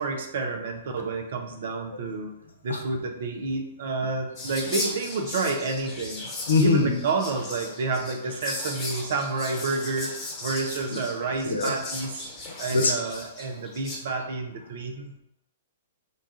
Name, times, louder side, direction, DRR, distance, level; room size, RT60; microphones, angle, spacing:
voice 1, 0.0-2.3 2.6-6.3 6.6-12.3 12.6-15.1, right 3 dB, 55° right, 4 dB, 0.6 m, -29 dB
Whispering, 4.3-14.0, left 2 dB, 25° left, 1.2 m, -37 dB
voice 2, 6.5-6.9 11.4-11.7 12.7-12.9, left 4 dB, 75° left, 3 dB, 0.7 m, -21 dB
3.8 x 2.3 x 3.9 m, 0.81 s
figure-of-eight pair, 110°, 0 cm